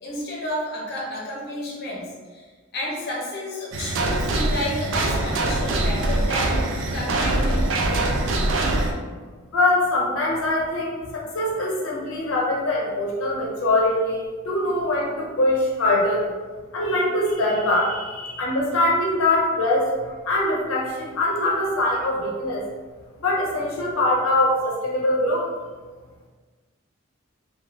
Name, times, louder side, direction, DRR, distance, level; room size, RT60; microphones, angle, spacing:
voice 1, 0.0-6.6 6.9-7.7, left 1 dB, 50° left, -4 dB, 0.7 m, -31 dB
sound 1, 3.7-8.9, right 2 dB, 65° right, 0.4 m, -23 dB
voice 2, 9.5-16.2 16.7-19.9 20.3-22.6 23.2-25.5, left 1 dB, 85° left, -2 dB, 0.6 m, -23 dB
3.0 x 2.3 x 2.6 m, 1.4 s
head